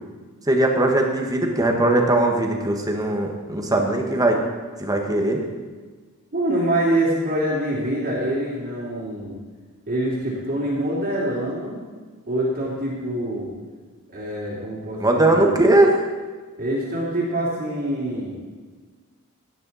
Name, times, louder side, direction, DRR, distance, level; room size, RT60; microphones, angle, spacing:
voice 1, 0.5-4.4 4.8-5.4 15.0-16.0, right 2 dB, 15° right, 2 dB, 1.5 m, -19 dB
voice 2, 6.3-9.4 9.9-11.8 12.3-13.5 14.1-15.5 16.6-18.4, right 1 dB, 45° right, -7 dB, 3.0 m, -25 dB
16.5 x 10.0 x 4.2 m, 1.4 s
head